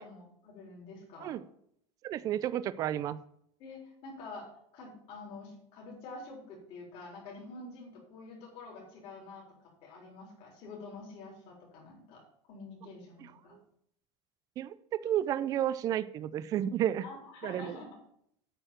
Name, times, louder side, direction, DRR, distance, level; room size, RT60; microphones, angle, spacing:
voice 1, 0.0-1.4 3.6-4.5 4.7-9.4 9.8-12.2 12.5-13.6 17.0-18.0, left 3 dB, 40° left, -2 dB, 3.8 m, -47 dB
voice 2, 2.0-3.2 14.6-17.1 17.4-17.8, right 11 dB, 25° right, 16 dB, 0.3 m, -31 dB
8.9 x 4.6 x 7.5 m, 0.71 s
supercardioid pair, 150°, 15 cm